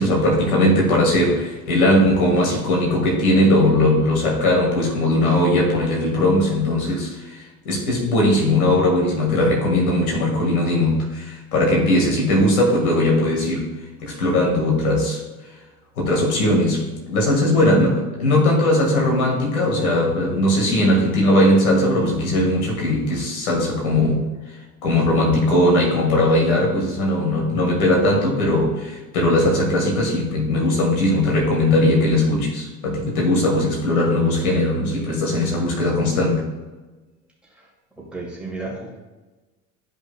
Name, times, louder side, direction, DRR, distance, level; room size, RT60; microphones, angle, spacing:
voice 1, 0.0-13.7 14.0-15.2 16.0-24.2 24.8-36.4, left 1 dB, 70° left, -1 dB, 2.0 m, -19 dB
voice 2, 38.0-39.0, right 3 dB, ahead, -5 dB, 2.5 m, -33 dB
12.0 x 5.3 x 2.3 m, 1.2 s
figure-of-eight pair, 65°, 45 cm